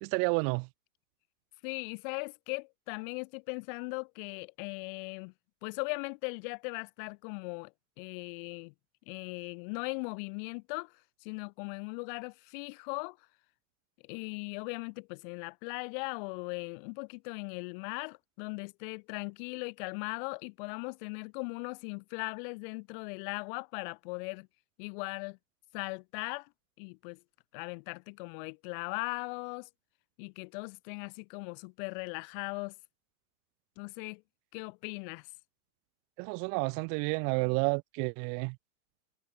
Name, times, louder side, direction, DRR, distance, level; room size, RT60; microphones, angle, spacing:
voice 1, 0.0-0.7 36.2-38.6, right 38 dB, 35° right, 0.8 m, -30 dB
voice 2, 1.6-5.3 5.6-8.7 9.1-10.9 11.2-13.2 14.0-24.5 24.8-25.4 25.7-26.5 26.8-27.2 27.5-29.7 30.2-32.7 33.8-34.2 34.5-35.3, left 34 dB, 40° left, 0.9 m, -39 dB
hypercardioid pair, 140°, 43 cm